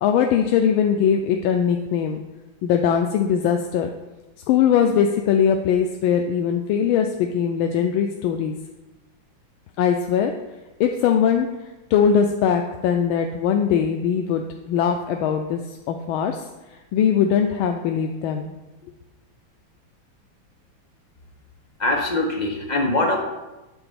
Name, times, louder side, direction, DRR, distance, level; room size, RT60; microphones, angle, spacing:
voice 1, 0.0-2.2 2.6-3.9 4.5-8.6 9.8-10.3 10.8-11.5 11.9-16.5 16.9-18.5, left 8 dB, 90° left, 4 dB, 1.4 m, -21 dB
voice 2, 21.8-23.2, left 2 dB, 30° left, 1 dB, 0.9 m, -22 dB
8.9 x 4.0 x 6.8 m, 1.1 s
omnidirectional pair, 2.2 m